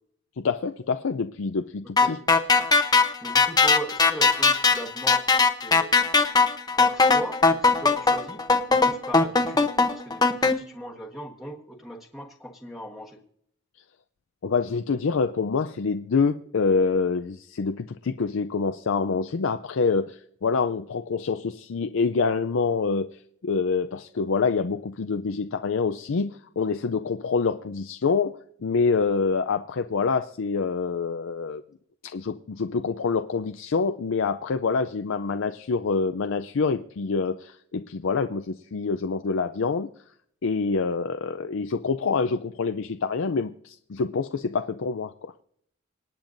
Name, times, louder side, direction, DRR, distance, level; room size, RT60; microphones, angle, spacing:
voice 1, 0.4-2.2 14.4-23.1 23.4-28.4 28.6-31.6 32.0-39.9 40.4-45.3, left 4 dB, 70° left, 8 dB, 0.5 m, -26 dB
sound 1, 2.0-10.5, left 4 dB, 20° left, 0.8 m, -19 dB
voice 2, 3.2-6.0 6.8-13.2, equal, ahead, -1 dB, 1.3 m, -39 dB
26.5 x 8.8 x 2.6 m, 0.65 s
head